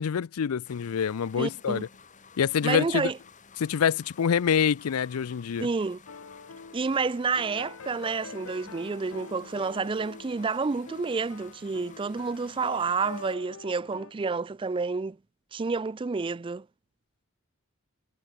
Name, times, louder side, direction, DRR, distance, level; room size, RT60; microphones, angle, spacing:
voice 1, 0.0-1.9 2.4-3.1 3.6-5.7, left 7 dB, 85° left, 0.5 m, -26 dB
sound 1, 0.6-13.4, left 5 dB, 35° left, 3.1 m, -53 dB
voice 2, 1.4-1.8 2.6-3.2 5.6-6.0 6.7-15.2 15.5-16.7, right 4 dB, 25° right, 0.3 m, -29 dB
sound 2, 6.1-14.1, left 5 dB, 70° left, 0.9 m, -45 dB
head